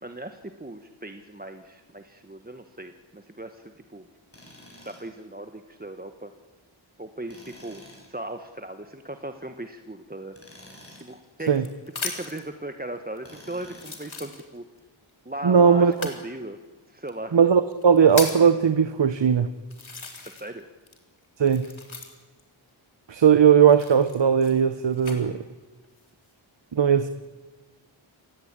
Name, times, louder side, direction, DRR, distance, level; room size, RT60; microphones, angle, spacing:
voice 1, 0.0-4.0 4.8-6.3 7.0-7.8 8.1-10.4 11.0-11.7 12.0-14.6 15.2-16.6 16.9-17.4 20.2-20.7, right 1 dB, 20° right, 7 dB, 1.2 m, -38 dB
Tools, 4.3-5.2 7.3-8.1 10.3-11.2 13.2-14.1, equal, 30° left, 7.7 m, -49 dB
sound 1, 10.8-12.5 13.2-13.3 13.7-14.8 15.9-16.2 17.1-17.2 17.7-18.5 19.2-19.3 19.7-20.6 20.9-22.4 23.6-25.2 25.8-26.3, left 4 dB, 75° left, 3.7 m, -36 dB
voice 2, 15.4-16.1 17.3-19.5 21.4-21.7 23.1-25.4 26.7-27.1, right 7 dB, 60° right, 12 dB, 1.0 m, -18 dB
29.0 x 16.5 x 8.8 m, 1.3 s
wide cardioid pair, 70°, 48 cm